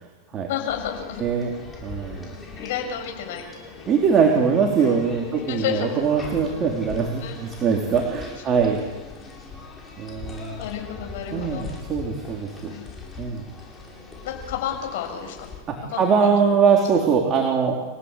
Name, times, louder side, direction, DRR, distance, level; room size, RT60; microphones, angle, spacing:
voice 1, 0.5-1.2 2.4-3.4 3.7-3.9 4.8-6.0 7.2-7.4 8.4-8.5 10.6-11.6 12.7-12.8 14.2-15.5 15.9-17.1, left 9 dB, 70° left, 3 dB, 7.0 m, -32 dB
sound 1, 0.7-15.6, left 4 dB, 15° left, 7.8 m, -40 dB
voice 2, 1.8-2.3 3.9-8.8 10.0-10.6 11.3-12.7 13.2-13.4 16.0-17.7, right 6 dB, 30° right, 0 dB, 3.7 m, -22 dB
29.5 x 17.5 x 8.5 m, 1.3 s
supercardioid pair, 140°, 0 cm